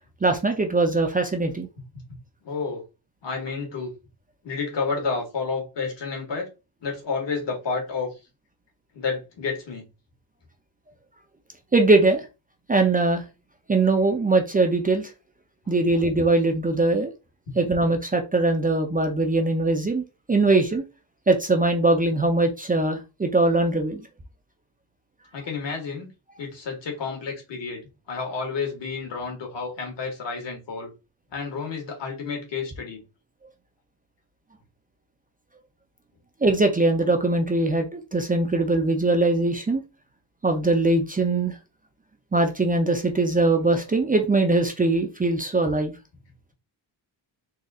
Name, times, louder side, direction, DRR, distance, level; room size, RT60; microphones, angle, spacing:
voice 1, 0.2-1.7 11.7-12.2 12.7-13.2 13.7-15.1 15.7-17.1 17.6-20.0 20.3-20.8 21.3-24.0 36.4-39.8 40.4-41.5 42.3-45.9, right 2 dB, 20° right, 0.6 m, -21 dB
voice 2, 2.4-2.8 3.2-3.9 4.4-6.5 6.8-8.1 8.9-9.9 15.7-15.8 17.5-17.6 20.4-20.5 25.3-26.1 26.4-30.9 31.3-33.0, left 4 dB, 65° left, 1.9 m, -30 dB
4.1 x 2.5 x 3.7 m
cardioid pair, 125°, 47 cm